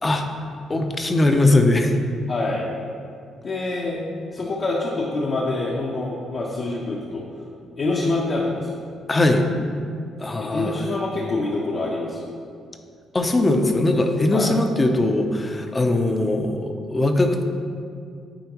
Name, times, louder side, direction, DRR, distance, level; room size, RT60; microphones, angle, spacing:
voice 1, 0.7-2.0 9.1-9.5 10.2-11.0 13.1-17.4, left 2 dB, 25° left, 5 dB, 0.6 m, -20 dB
voice 2, 2.3-2.7 3.4-4.0 4.3-7.2 7.8-8.8 10.4-12.3 14.3-14.5, left 2 dB, 50° left, -4 dB, 0.8 m, -26 dB
9.1 x 4.3 x 3.0 m, 2.3 s
cardioid pair, 90°, 0 cm